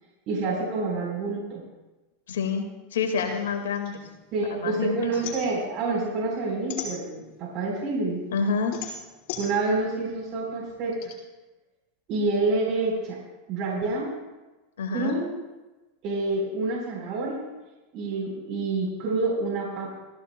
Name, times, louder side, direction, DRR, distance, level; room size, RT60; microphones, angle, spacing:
voice 1, 0.3-1.6 4.3-8.2 9.4-11.1 12.1-13.2 13.5-14.1 14.9-15.3 16.0-17.4 17.9-20.0, right 3 dB, 50° right, -1 dB, 4.1 m, -28 dB
voice 2, 2.3-2.7 2.9-4.0 4.4-5.1 8.3-8.8 14.8-15.2, left 5 dB, 85° left, 4 dB, 1.9 m, -27 dB
sound 1, 3.2-4.7 5.0-7.5 8.0-11.1, left 6 dB, 60° left, 4.6 m, -39 dB
23.0 x 15.5 x 2.2 m, 1.1 s
hypercardioid pair, 105°, 0 cm